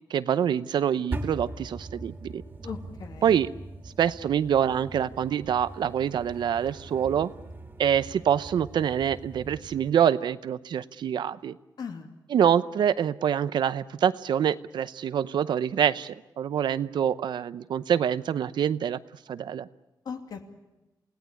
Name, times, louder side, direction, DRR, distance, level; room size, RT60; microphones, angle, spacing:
voice 1, 0.1-2.4 3.2-3.5 4.0-7.3 7.8-11.6 12.3-19.0 19.3-19.7, right 9 dB, 80° right, 14 dB, 0.7 m, -25 dB
sound 1, 1.1-9.9, right 2 dB, 25° right, 2.3 m, -41 dB
voice 2, 2.6-3.4 11.8-12.1 20.0-20.5, left 6 dB, 65° left, 4 dB, 2.7 m, -38 dB
28.5 x 17.5 x 8.4 m, 1.0 s
wide cardioid pair, 150°, 8 cm